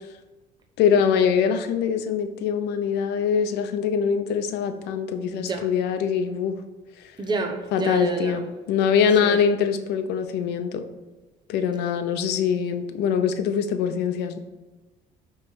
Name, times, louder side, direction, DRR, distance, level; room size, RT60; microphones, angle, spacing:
voice 1, 0.8-6.6 7.0-7.1 7.7-10.8 11.5-14.4, left 7 dB, 85° left, 8 dB, 0.7 m, -23 dB
voice 2, 5.3-5.6 7.2-8.4 9.2-9.4, right 4 dB, 25° right, 4 dB, 0.9 m, -29 dB
8.6 x 3.3 x 4.6 m, 1.2 s
cardioid pair, 110°, 17 cm